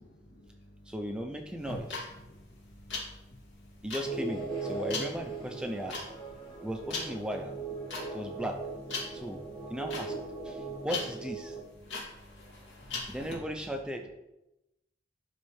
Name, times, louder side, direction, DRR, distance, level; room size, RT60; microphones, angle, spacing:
voice 1, 0.0-1.9 2.2-3.9 6.3-6.7 7.9-8.4 9.0-9.8 10.3-10.9 11.4-13.2, equal, 70° left, 0 dB, 1.7 m, -56 dB
voice 2, 0.9-2.1 3.8-6.0 6.6-7.5 8.1-8.6 9.1-9.4 9.7-10.1 10.4-11.6 13.1-14.1, equal, 5° right, 3 dB, 0.4 m, -36 dB
sound 1, 1.6-13.3, left 3 dB, 85° left, 2.4 m, -40 dB
sound 2, 4.0-11.6, right 3 dB, 25° left, 2.1 m, -39 dB
12.0 x 4.1 x 3.1 m, 0.94 s
head